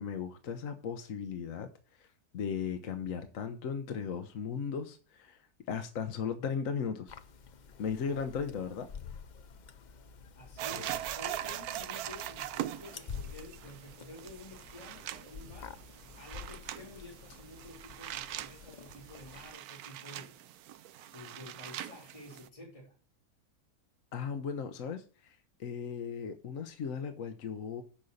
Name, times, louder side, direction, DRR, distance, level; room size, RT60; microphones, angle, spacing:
voice 1, 0.0-1.7 2.0-2.1 2.3-5.4 5.7-7.1 7.8-8.9 24.1-27.8, left 6 dB, 60° left, 1.2 m, -36 dB
sound 1, 7.1-19.5, left 6 dB, 85° left, 0.4 m, -49 dB
voice 2, 10.3-15.8 16.1-20.3 21.1-22.9, left 2 dB, 20° left, 3.2 m, -50 dB
sound 2, 10.6-22.5, right 12 dB, 75° right, 1.1 m, -42 dB
8.7 x 5.5 x 6.5 m
omnidirectional pair, 1.6 m